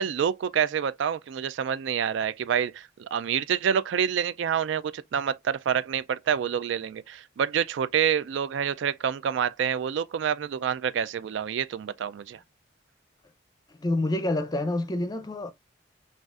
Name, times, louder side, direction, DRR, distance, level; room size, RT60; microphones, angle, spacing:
voice 1, 0.0-12.4, right 8 dB, 70° right, 0.3 m, -27 dB
voice 2, 13.7-15.5, left 1 dB, 20° left, 0.6 m, -27 dB
6.3 x 2.5 x 2.4 m
head